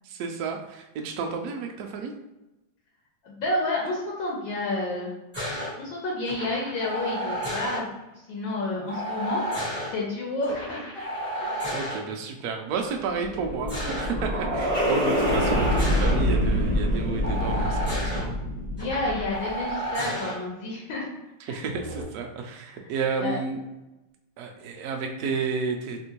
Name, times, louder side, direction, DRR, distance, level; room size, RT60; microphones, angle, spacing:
voice 1, 0.0-2.1 11.7-18.4 21.4-23.6 24.4-26.0, right 5 dB, 85° right, 3 dB, 0.8 m, -31 dB
voice 2, 3.2-5.1 5.8-7.9 8.3-9.4 9.9-11.5 18.8-21.1 21.5-21.7 22.8-22.9 23.2-23.4, left 2 dB, 75° left, -3 dB, 1.5 m, -30 dB
sound 1, 5.3-5.7 6.3-7.8 8.9-9.9 10.4-12.0 13.3-14.1 14.6-16.1 17.2-18.2 18.8-20.3 21.6-22.0, equal, 10° right, 0.7 m, -32 dB
sound 2, 13.0-19.5, equal, 25° left, 0.9 m, -26 dB
3.6 x 2.6 x 2.8 m, 0.99 s
omnidirectional pair, 2.2 m